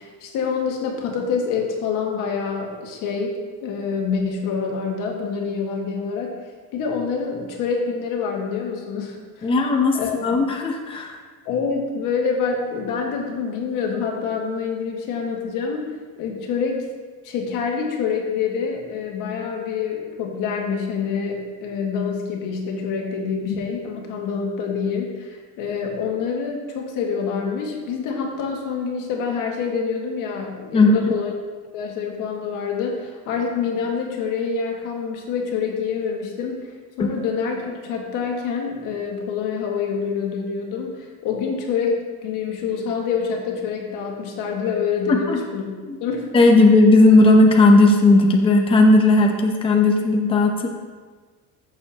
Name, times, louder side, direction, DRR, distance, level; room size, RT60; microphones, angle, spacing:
voice 1, 0.0-6.4 6.7-9.5 9.9-10.2 11.5-16.9 17.2-31.3 31.7-45.7 46.0-46.3, left 5 dB, 60° left, 1 dB, 1.8 m, -26 dB
voice 2, 9.4-11.1 30.7-31.1 45.1-45.4 46.3-50.7, left 2 dB, 15° left, 2 dB, 0.7 m, -15 dB
14.5 x 6.9 x 2.9 m, 1.4 s
cardioid pair, 165°, 36 cm